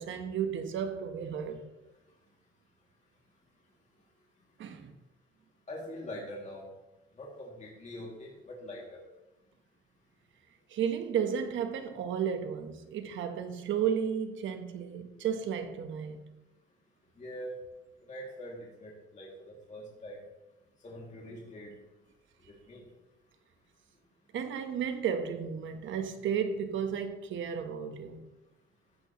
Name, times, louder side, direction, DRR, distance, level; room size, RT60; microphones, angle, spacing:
voice 1, 0.0-1.6 4.6-4.9 10.7-16.3 24.3-28.2, right 7 dB, 75° right, 1.1 m, -33 dB
voice 2, 5.7-6.6 7.2-9.0 17.2-17.5 18.1-20.2 20.8-21.7 22.5-22.9, equal, 35° left, 2.5 m, -43 dB
14.0 x 8.5 x 3.0 m
cardioid pair, 90°, 20 cm